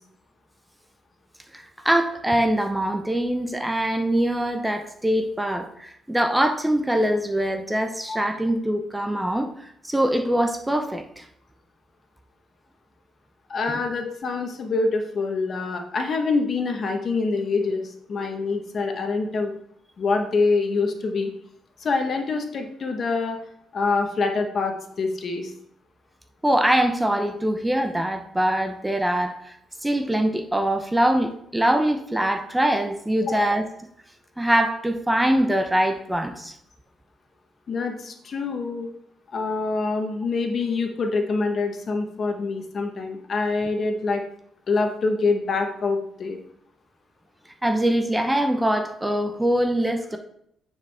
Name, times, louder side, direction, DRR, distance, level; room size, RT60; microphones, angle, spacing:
voice 1, 1.5-11.3 26.4-29.5 29.8-33.7 34.4-36.5 47.6-50.2, right 1 dB, 10° right, 6 dB, 0.8 m, -23 dB
voice 2, 13.5-19.5 20.0-21.3 21.8-23.4 23.7-25.5 33.2-33.5 37.7-38.9 39.3-44.2 44.7-46.4, left 3 dB, 50° left, 4 dB, 1.2 m, -25 dB
9.2 x 5.0 x 3.5 m, 0.71 s
cardioid pair, 90°, 0 cm